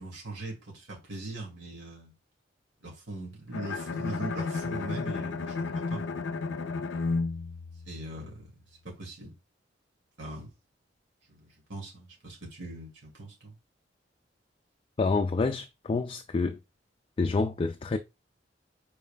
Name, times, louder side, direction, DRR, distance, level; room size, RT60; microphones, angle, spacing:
voice 1, 0.0-2.1 2.8-6.0 7.8-8.6 8.8-9.4 10.2-10.5 11.3-13.5, right 2 dB, 75° right, 2.2 m, -41 dB
Bowed string instrument, 3.5-8.5, left 4 dB, 80° left, 0.5 m, -33 dB
voice 2, 15.0-16.6 17.2-18.0, left 3 dB, 30° left, 0.3 m, -28 dB
5.2 x 4.6 x 2.2 m
head